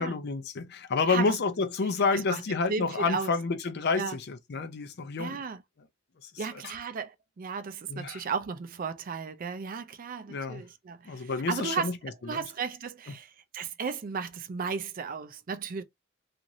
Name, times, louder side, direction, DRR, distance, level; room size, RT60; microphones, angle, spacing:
voice 1, 0.0-5.4 6.2-6.3 7.9-8.2 10.3-10.6 11.1-12.0 12.2-12.5, left 4 dB, 55° left, 0.5 m, -29 dB
voice 2, 2.7-3.3 4.0-4.2 5.2-5.6 6.4-11.9 12.3-15.8, right 5 dB, 45° right, 0.4 m, -34 dB
2.6 x 2.5 x 2.9 m
head